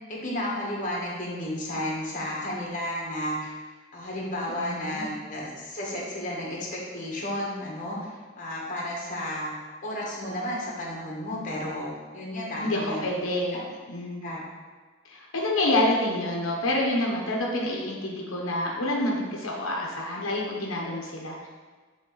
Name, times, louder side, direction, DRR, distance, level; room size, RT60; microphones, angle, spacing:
voice 1, 0.1-3.5 3.9-8.1 8.4-9.6 9.8-13.1 13.5-13.6 14.2-14.4, left 1 dB, 40° left, -4 dB, 1.6 m, -32 dB
voice 2, 4.6-5.0 12.6-13.6 13.9-14.3 15.0-21.5, left 1 dB, 90° left, -2 dB, 1.0 m, -28 dB
7.6 x 3.8 x 3.9 m, 1.4 s
head